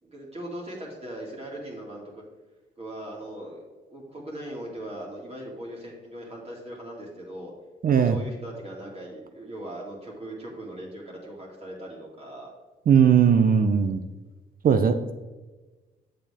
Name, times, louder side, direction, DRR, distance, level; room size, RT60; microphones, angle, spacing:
voice 1, 0.0-2.2 2.8-3.6 3.9-7.5 7.9-12.5, right 1 dB, 30° right, -3 dB, 2.5 m, -39 dB
voice 2, 7.8-8.2 12.9-14.0 14.6-15.1, right 7 dB, 45° right, 9 dB, 0.6 m, -19 dB
7.7 x 6.9 x 3.6 m, 1.2 s
cardioid pair, 90°, 20 cm